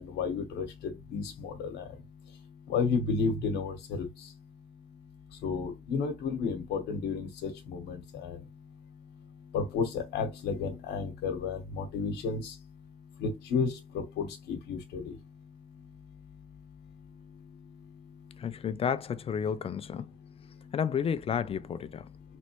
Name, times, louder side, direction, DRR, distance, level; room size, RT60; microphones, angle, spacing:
voice 1, 0.0-1.8 2.7-4.1 5.4-8.4 9.5-12.5 13.2-15.1, left 5 dB, 85° left, 1.1 m, -32 dB
voice 2, 18.4-20.1 20.7-22.1, left 7 dB, 35° left, 0.5 m, -31 dB
4.2 x 3.1 x 3.0 m
cardioid pair, 110°, 17 cm